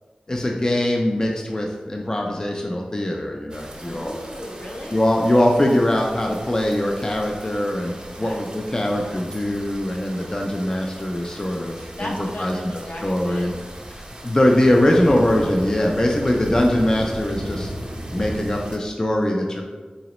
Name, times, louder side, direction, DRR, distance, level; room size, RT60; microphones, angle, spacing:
voice 1, 0.3-4.1 4.9-12.1 12.4-12.5 13.0-13.5 14.2-17.7 18.1-19.6, left 1 dB, 25° left, 0 dB, 0.3 m, -21 dB
sound 1, 3.5-18.8, right 1 dB, 35° right, 0.6 m, -37 dB
voice 2, 3.8-5.0 7.4-7.7 8.2-8.4 8.7-9.3 12.0-13.6, left 1 dB, 70° left, -3 dB, 0.7 m, -36 dB
3.9 x 2.9 x 2.9 m, 1.4 s
wide cardioid pair, 65°, 3 cm